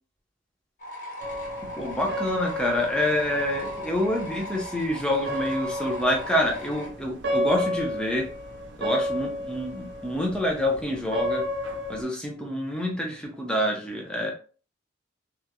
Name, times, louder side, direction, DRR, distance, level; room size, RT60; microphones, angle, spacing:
sound 1, 0.8-6.9, left 1 dB, 45° left, 1.1 m, -40 dB
sound 2, 1.2-12.0, left 1 dB, 70° right, 0.5 m, -32 dB
voice 1, 1.8-8.3 8.8-11.5 11.9-14.3, left 1 dB, 5° left, -1 dB, 0.6 m, -27 dB
3.0 x 2.5 x 2.2 m, 0.38 s
head